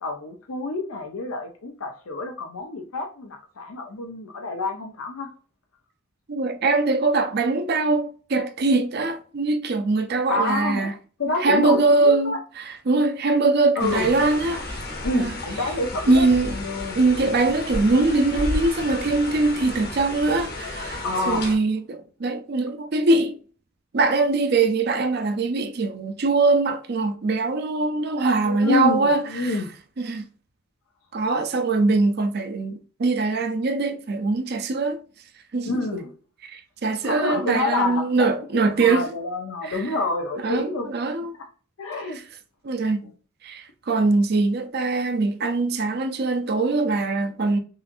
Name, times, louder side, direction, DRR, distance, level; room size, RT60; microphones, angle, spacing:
voice 1, 0.0-5.3 10.3-10.9 11.2-12.4 13.8-14.1 15.0-16.3 16.5-17.0 21.0-21.5 28.4-29.7 35.7-36.1 37.0-38.3 38.5-40.9 41.8-42.2 43.0-43.1, left 3 dB, 85° left, 0.6 m, -28 dB
voice 2, 6.3-10.9 11.4-14.8 15.1-15.4 16.1-16.6 17.0-21.0 21.3-23.4 23.9-29.6 30.0-30.2 31.1-35.0 35.5-36.0 36.5-39.1 39.7-39.8 40.4-41.4 42.6-43.0 43.4-47.6, right 3 dB, 50° right, 0.5 m, -22 dB
sound 1, 13.8-21.6, left 2 dB, 50° left, 1.0 m, -32 dB
5.5 x 2.6 x 2.5 m
head